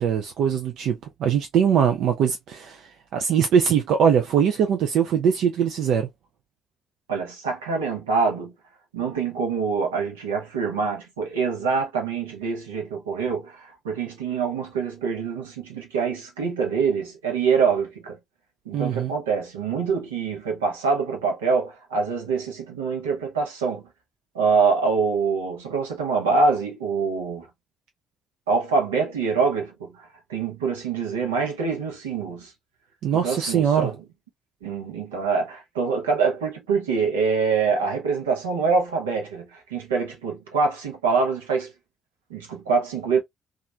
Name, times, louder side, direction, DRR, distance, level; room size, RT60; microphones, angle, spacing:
voice 1, 0.0-6.1 18.7-19.1 33.0-33.9, right 8 dB, 65° right, 0.4 m, -22 dB
voice 2, 7.1-8.5 8.9-18.2 18.7-23.8 24.3-27.5 28.5-32.5 33.1-34.0 34.6-41.7 42.3-43.2, right 5 dB, 85° right, 0.7 m, -25 dB
3.0 x 2.4 x 2.3 m
figure-of-eight pair, 45°, 0 cm